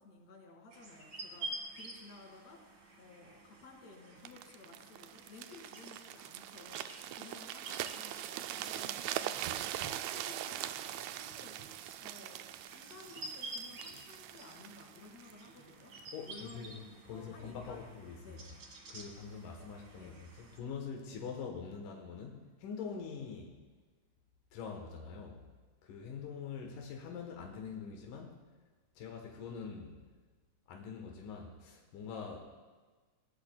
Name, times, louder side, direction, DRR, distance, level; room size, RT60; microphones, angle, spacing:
voice 1, 0.0-2.6 3.0-6.8 7.1-9.4 9.7-11.5 12.0-16.7 17.1-17.8 18.2-18.5 20.0-20.2, left 3 dB, 60° left, 0 dB, 3.3 m, -55 dB
sound 1, 0.7-20.6, right 2 dB, 45° right, 1.9 m, -50 dB
sound 2, 4.2-16.1 16.7-16.9, right 12 dB, 85° right, 1.6 m, -42 dB
sound 3, 9.3-16.8, right 6 dB, 60° right, 2.0 m, -57 dB
voice 2, 16.1-18.4 18.9-23.6 24.5-25.4 25.8-28.4 29.0-30.0 30.7-32.5, left 6 dB, 90° left, 1 dB, 2.7 m, -44 dB
20.0 x 17.0 x 2.2 m, 1.4 s
omnidirectional pair, 3.6 m